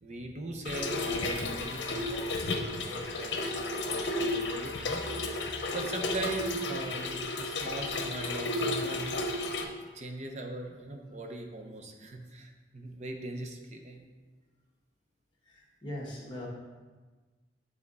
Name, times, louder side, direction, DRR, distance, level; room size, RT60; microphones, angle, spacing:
voice 1, 0.0-5.0 5.7-9.1 9.6-9.7 9.9-14.0, right 2 dB, 40° right, 4 dB, 0.7 m, -40 dB
Trickle dribble / Fill (with liquid), 0.6-9.6, left 2 dB, 80° left, 0.7 m, -33 dB
voice 2, 15.5-16.5, left 1 dB, 25° left, -3 dB, 1.5 m, -41 dB
9.6 x 3.6 x 4.0 m, 1.3 s
head